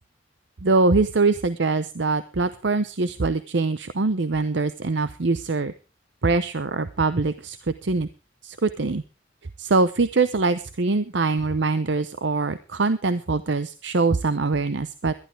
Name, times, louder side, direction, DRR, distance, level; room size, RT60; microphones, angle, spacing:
voice 1, 0.6-5.7 6.2-8.1 8.4-9.0 9.6-15.1, right 3 dB, 65° right, 13 dB, 0.7 m, -23 dB
21.5 x 12.0 x 3.4 m, 0.32 s
head